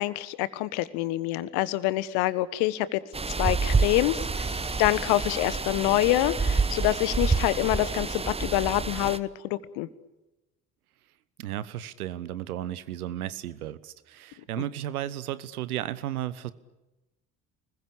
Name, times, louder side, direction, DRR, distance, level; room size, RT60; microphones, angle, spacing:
voice 1, 0.0-4.5 4.8-9.9, left 16 dB, 55° left, 17 dB, 1.4 m, -26 dB
sound 1, 3.1-9.2, right 4 dB, 15° right, 1.0 m, -28 dB
sound 2, 4.3-8.4, left 1 dB, 10° left, 3.2 m, -48 dB
voice 2, 11.4-16.5, right 12 dB, 70° right, 16 dB, 1.3 m, -34 dB
29.5 x 21.0 x 8.5 m, 1.0 s
figure-of-eight pair, 55°, 45 cm